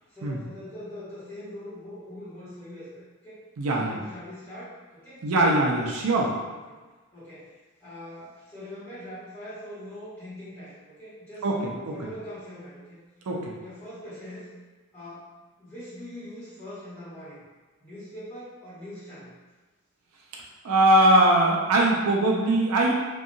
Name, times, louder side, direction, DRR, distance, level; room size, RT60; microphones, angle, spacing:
voice 1, 0.1-3.4 3.7-5.5 6.7-6.8 7.1-7.5 7.8-13.0 13.5-14.5 14.9-15.3 15.6-17.4 17.8-19.3, left 1 dB, 10° left, -14 dB, 1.3 m, -42 dB
voice 2, 3.6-4.0 5.2-6.3 11.4-11.6 11.9-12.0 13.3-13.5 20.6-22.9, right 1 dB, 85° right, -1 dB, 0.5 m, -21 dB
2.7 x 2.3 x 2.6 m, 1.3 s
head